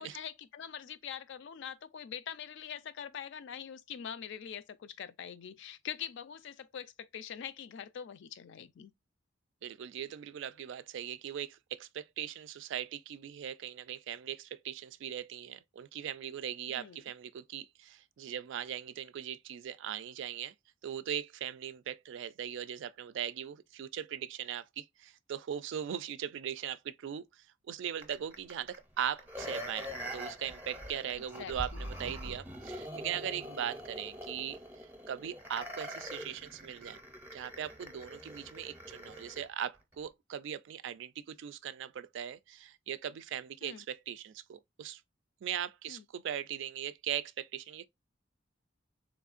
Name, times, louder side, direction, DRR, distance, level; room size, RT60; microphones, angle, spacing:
voice 1, 0.0-8.9 16.7-17.0 31.4-31.9 43.6-43.8 45.9-46.0, left 8 dB, 65° left, 0.4 m, -44 dB
voice 2, 9.6-20.5 20.8-37.0 37.3-45.0 45.4-47.9, right 9 dB, 65° right, 0.3 m, -39 dB
sound 1, 28.0-39.5 39.9-40.0, equal, 10° right, 0.6 m, -44 dB
3.5 x 3.1 x 2.4 m
head